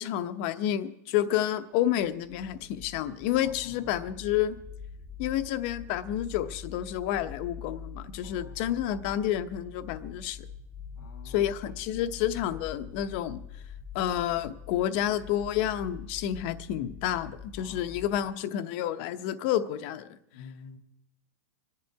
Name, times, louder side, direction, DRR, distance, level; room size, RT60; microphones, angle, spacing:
voice 1, 0.0-4.5 5.2-10.4 11.2-13.4 13.9-20.1, left 11 dB, 35° left, 11 dB, 0.8 m, -29 dB
sound 1, 2.0-18.3, left 5 dB, 5° left, 0.8 m, -45 dB
voice 2, 3.4-4.1 8.2-8.8 11.0-11.5 17.6-18.0 20.3-20.8, left 5 dB, 90° left, 8 dB, 1.8 m, -50 dB
26.0 x 10.5 x 4.7 m, 0.84 s
supercardioid pair, 170°, 10 cm